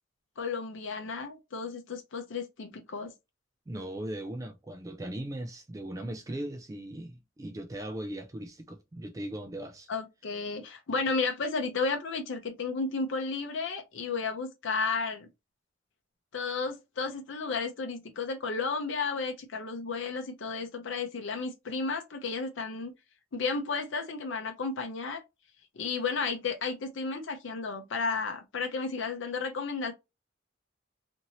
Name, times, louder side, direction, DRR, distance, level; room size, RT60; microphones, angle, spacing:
voice 1, 0.4-3.1 9.9-15.3 16.3-22.9 23.3-25.2 25.7-29.9, left 4 dB, 70° left, 0.6 m, -33 dB
voice 2, 3.7-9.9, right 1 dB, 15° right, 0.3 m, -38 dB
2.8 x 2.6 x 2.7 m
head